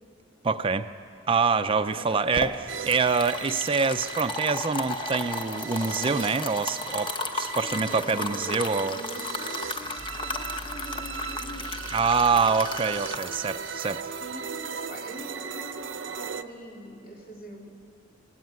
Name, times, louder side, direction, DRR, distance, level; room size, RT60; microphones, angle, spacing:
voice 1, 0.4-0.9 1.3-9.0 11.9-14.0, right 5 dB, 30° right, 10 dB, 0.4 m, -25 dB
sound 1, 2.0-15.0, left 3 dB, 25° left, 1.0 m, -35 dB
sound 2, 2.7-16.4, right 7 dB, 75° right, 0.7 m, -38 dB
voice 2, 7.6-11.9 14.2-17.7, equal, 50° left, 0 dB, 2.9 m, -43 dB
sound 3, 9.6-13.7, equal, 80° left, 3.1 m, -45 dB
18.5 x 17.0 x 9.5 m, 2.5 s
head